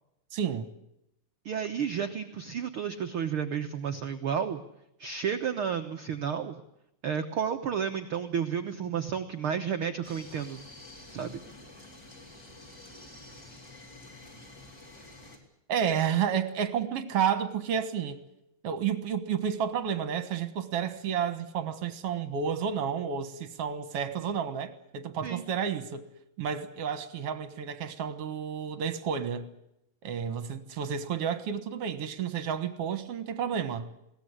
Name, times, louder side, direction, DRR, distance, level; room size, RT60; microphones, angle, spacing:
voice 1, 0.3-0.7 15.7-18.2 18.6-26.1 26.4-29.5 30.0-33.9, right 8 dB, 55° right, 1.9 m, -31 dB
voice 2, 1.4-4.6 5.0-6.6 7.0-10.6 11.1-11.4 25.2-25.4, right 7 dB, 75° right, 1.2 m, -31 dB
sound 1, 10.0-15.4, left 2 dB, 25° left, 4.3 m, -49 dB
21.5 x 18.0 x 9.8 m
omnidirectional pair, 4.1 m